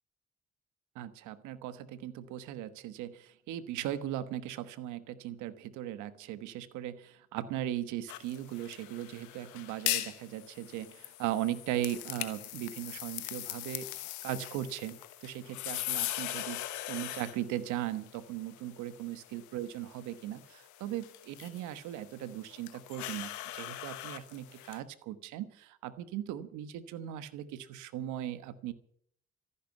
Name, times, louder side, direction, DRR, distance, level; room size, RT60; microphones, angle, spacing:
voice 1, 0.9-13.9 14.2-28.7, right 12 dB, 85° right, 13 dB, 1.2 m, -38 dB
sound 1, 8.1-24.8, left 15 dB, 90° left, 1.2 m, -41 dB
14.5 x 11.5 x 8.3 m, 0.62 s
hypercardioid pair, 45°, 29 cm